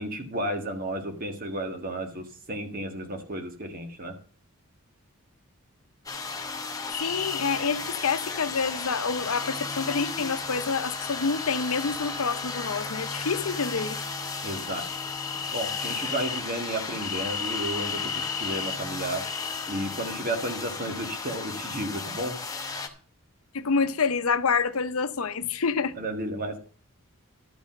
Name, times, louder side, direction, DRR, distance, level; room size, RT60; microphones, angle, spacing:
voice 1, 0.0-4.2 14.4-14.9 15.5-18.0 18.3-19.2 19.7-22.4 26.0-26.6, right 1 dB, 45° right, 1.7 m, -32 dB
sound 1, 6.1-22.9, left 4 dB, 15° left, 1.1 m, -35 dB
sound 2, 6.9-7.4 8.6-10.1 10.7-12.7 13.0-16.5 17.0-18.8 19.2-20.1, left 8 dB, 30° left, 1.7 m, -37 dB
voice 2, 7.0-14.0 23.5-25.9, left 5 dB, 85° left, 0.8 m, -27 dB
12.0 x 5.2 x 7.4 m
head